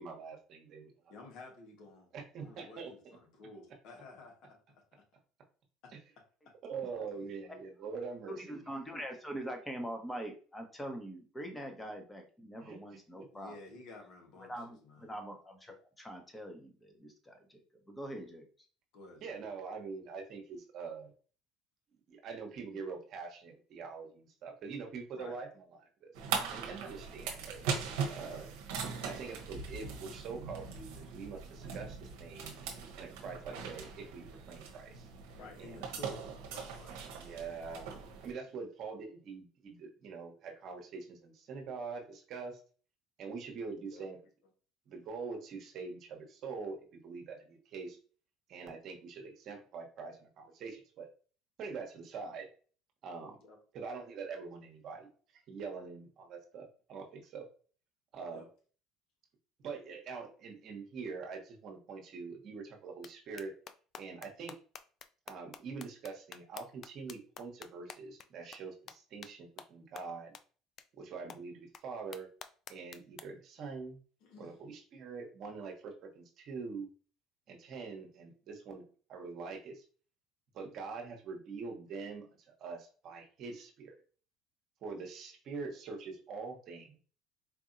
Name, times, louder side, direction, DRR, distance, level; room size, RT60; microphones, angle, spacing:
voice 1, 0.0-1.1 2.1-2.9 5.9-6.0 6.6-8.6 12.6-12.8 13.2-13.3 19.2-21.1 22.1-27.6 28.1-28.5 29.0-32.5 33.0-35.1 35.6-35.8 37.2-42.6 43.2-44.2 44.9-48.0 48.5-51.1 51.6-52.5 53.0-53.4 53.7-57.5 58.1-58.4 59.6-63.5 64.0-64.5 65.3-70.4 70.9-72.3 72.7-74.0 74.4-76.9 77.5-78.8 79.1-79.8 80.5-84.0 84.8-87.0, right 5 dB, 55° right, 3 dB, 0.9 m, -44 dB
voice 2, 1.1-2.1 2.4-4.6 8.2-8.3 13.3-14.5 14.8-15.1 18.9-19.5 25.1-25.4 28.3-28.5 35.3-37.4 43.9-44.1 53.4-53.6 58.3-58.5 74.2-74.6, left 3 dB, 65° left, 2 dB, 1.2 m, -52 dB
voice 3, 8.3-13.6 14.5-18.5, right 1 dB, 15° left, 4 dB, 1.0 m, -43 dB
sound 1, 26.1-38.3, right 6 dB, 80° right, 0.8 m, -40 dB
sound 2, 63.0-63.1 63.4-68.3 68.5-68.6 68.9-69.0 69.2-69.3 69.6-69.7 70.0-70.1 70.3-70.4 70.8-70.9 71.3-71.4 71.7-71.8 72.1-73.2, left 8 dB, 50° left, 0.3 m, -48 dB
4.4 x 2.6 x 2.6 m, 0.40 s
supercardioid pair, 85°, 0 cm